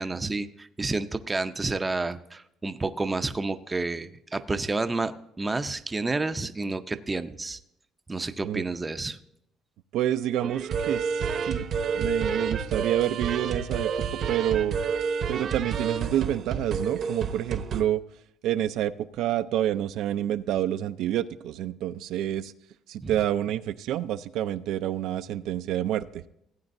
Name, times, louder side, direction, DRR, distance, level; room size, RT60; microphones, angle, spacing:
voice 1, 0.0-7.6 8.1-9.2 23.0-23.1, right 3 dB, 15° right, 10 dB, 0.5 m, -30 dB
voice 2, 9.9-11.6 11.9-13.9 14.3-14.8 15.3-18.0 18.4-22.5 22.9-26.2, right 12 dB, 70° right, 11 dB, 0.4 m, -28 dB
sound 1, 10.4-17.8, right 6 dB, 45° right, 0.8 m, -29 dB
16.0 x 8.9 x 2.6 m, 0.77 s
cardioid pair, 145°, 0 cm